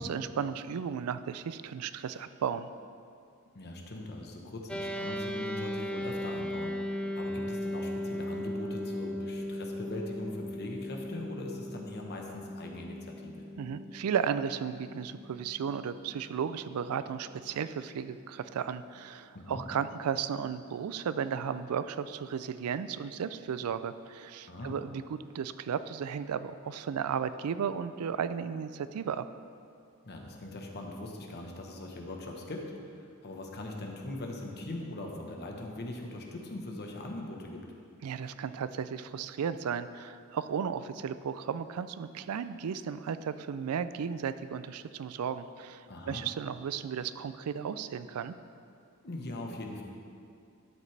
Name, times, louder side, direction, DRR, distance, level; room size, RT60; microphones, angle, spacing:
voice 1, 0.0-2.7 13.6-29.2 38.0-48.3, right 7 dB, 85° right, 13 dB, 0.4 m, -34 dB
voice 2, 3.5-13.4 19.3-19.6 24.5-24.8 30.0-37.6 45.9-46.2 49.0-49.8, left 1 dB, 50° left, 1 dB, 1.1 m, -41 dB
sound 1, 4.7-16.2, left 1 dB, 5° left, 0.4 m, -37 dB
12.0 x 7.4 x 3.3 m, 2.5 s
head